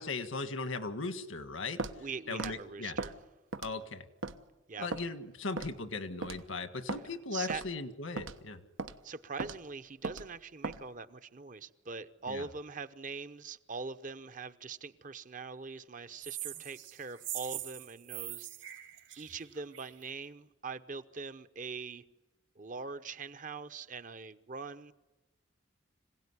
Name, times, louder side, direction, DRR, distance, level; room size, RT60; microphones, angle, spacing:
voice 1, 0.0-1.8 2.3-2.9 3.6-4.1 4.8-8.6 12.3-12.4, left 3 dB, 85° left, 1.7 m, -38 dB
Walk footsteps, 1.8-2.0 2.4-2.6 3.0-3.1 3.5-3.8 4.2-4.4 4.9-5.0 5.6-5.8 6.2-6.4 6.9-7.0 7.5-7.7 8.2-8.4 8.8-8.9 9.4-9.6 10.0-10.3 10.6-10.8, right 3 dB, 85° right, 1.2 m, -37 dB
voice 2, 2.0-3.1 4.7-4.9 6.9-7.6 9.0-18.5 19.2-22.0 22.6-24.9, right 4 dB, 40° right, 0.8 m, -43 dB
sound 1, 16.2-20.0, right 14 dB, 70° right, 3.1 m, -42 dB
26.0 x 17.5 x 9.8 m
head